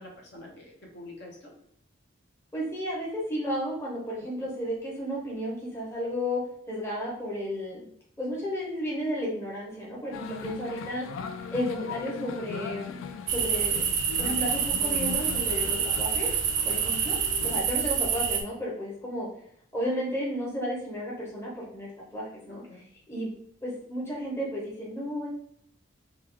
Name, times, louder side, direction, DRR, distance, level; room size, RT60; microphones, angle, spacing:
voice 1, 0.0-1.5 4.3-4.5 17.0-17.5 22.5-22.8, left 1 dB, 55° left, -1 dB, 0.8 m, -47 dB
voice 2, 2.5-6.4 6.7-7.8 8.2-11.1 11.5-12.9 13.3-16.3 16.6-17.2 17.4-19.3 19.7-22.6 23.1-23.3 23.6-25.3, equal, 15° left, -5 dB, 0.8 m, -33 dB
sound 1, 10.1-17.6, left 6 dB, 80° left, 0.3 m, -39 dB
sound 2, 13.3-18.4, right 7 dB, 60° right, 0.5 m, -27 dB
3.0 x 2.3 x 3.5 m, 0.69 s
head